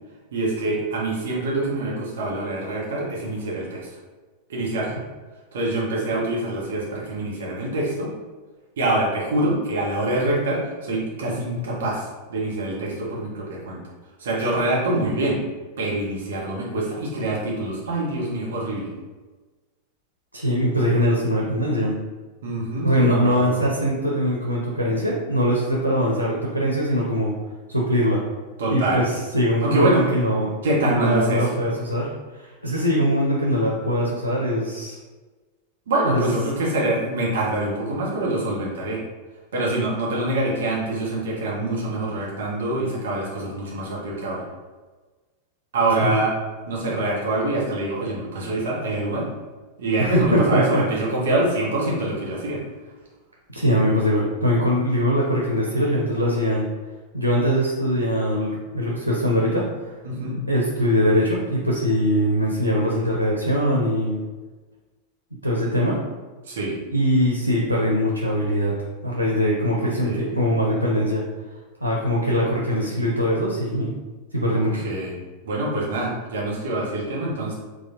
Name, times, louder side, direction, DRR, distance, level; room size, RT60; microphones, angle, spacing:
voice 1, 0.3-3.9 4.5-4.9 5.5-8.1 8.8-13.8 14.2-15.4 15.8-18.9 22.4-23.7 28.6-29.0 29.6-30.0 30.6-31.5 35.9-39.0 39.5-44.4 45.7-46.3 46.7-49.3 49.8-52.6 60.0-60.4 66.5-66.8 69.8-70.3 74.5-75.1 75.4-77.5, right 2 dB, 60° right, -4 dB, 1.0 m, -25 dB
voice 2, 20.3-21.9 22.8-27.3 27.7-28.2 28.7-35.0 36.0-36.2 46.0-46.3 50.0-50.8 53.5-56.7 57.1-59.9 60.5-64.2 65.4-66.0 66.9-68.7 69.0-71.2 71.8-73.9 74.3-74.9, equal, 90° left, -3 dB, 0.5 m, -22 dB
4.0 x 2.4 x 2.7 m, 1.3 s
figure-of-eight pair, 90°, 0 cm